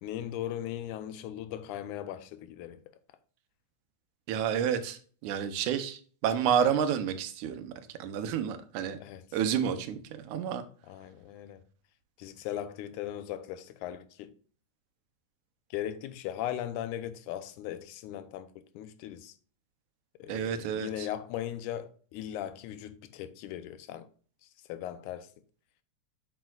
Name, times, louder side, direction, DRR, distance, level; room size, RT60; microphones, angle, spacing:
voice 1, 0.0-2.8 9.0-9.2 10.9-11.6 12.2-14.3 15.7-18.5 18.8-19.3 20.2-24.1 24.7-25.3, left 11 dB, 90° left, 2.1 m, -38 dB
voice 2, 4.3-7.7 8.0-9.0 9.3-10.6 20.3-21.1, right 8 dB, 85° right, 2.2 m, -30 dB
7.6 x 7.1 x 2.3 m
omnidirectional pair, 3.4 m